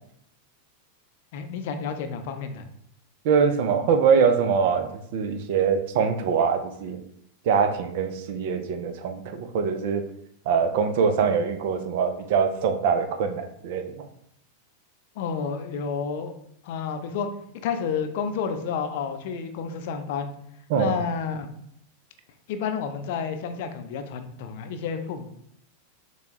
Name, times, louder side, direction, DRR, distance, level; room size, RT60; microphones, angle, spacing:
voice 1, 1.3-2.6 15.2-16.3 16.6-17.3 17.6-20.3 20.7-21.5 22.5-25.3, left 6 dB, 50° left, 7 dB, 0.5 m, -30 dB
voice 2, 3.2-7.0 7.5-10.0 10.5-14.0 20.7-21.0, right 6 dB, 50° right, 7 dB, 0.5 m, -23 dB
6.7 x 2.3 x 3.0 m, 0.71 s
figure-of-eight pair, 90°, 0 cm